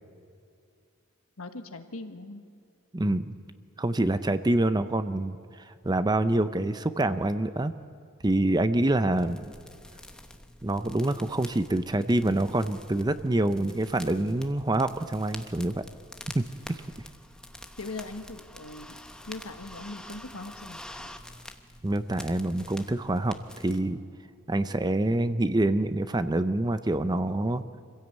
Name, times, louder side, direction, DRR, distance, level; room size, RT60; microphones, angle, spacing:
voice 1, 1.4-2.4 17.8-19.0 19.3-21.1, left 2 dB, 80° left, 7 dB, 1.5 m, -40 dB
voice 2, 2.9-3.4 3.8-7.7 8.2-9.4 10.6-15.8 16.3-16.8 21.8-24.0 24.5-27.6, right 1 dB, 20° right, 11 dB, 0.6 m, -26 dB
sound 1, 9.1-23.8, left 1 dB, 5° left, 0.9 m, -47 dB
25.0 x 16.0 x 8.1 m, 2.3 s
head